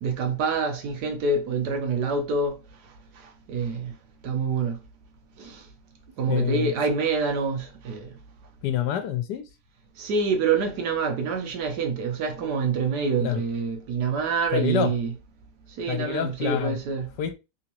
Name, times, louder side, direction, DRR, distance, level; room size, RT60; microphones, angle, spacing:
voice 1, 0.0-2.6 3.5-3.9 4.2-4.8 5.4-5.6 6.2-8.1 10.0-15.1 15.8-17.1, right 4 dB, 75° right, 1.3 m, -26 dB
voice 2, 6.3-6.7 8.6-9.5 13.2-13.4 14.5-14.9 15.9-16.8 17.2-17.3, left 10 dB, 80° left, 1.3 m, -27 dB
3.6 x 2.9 x 2.9 m
omnidirectional pair, 1.8 m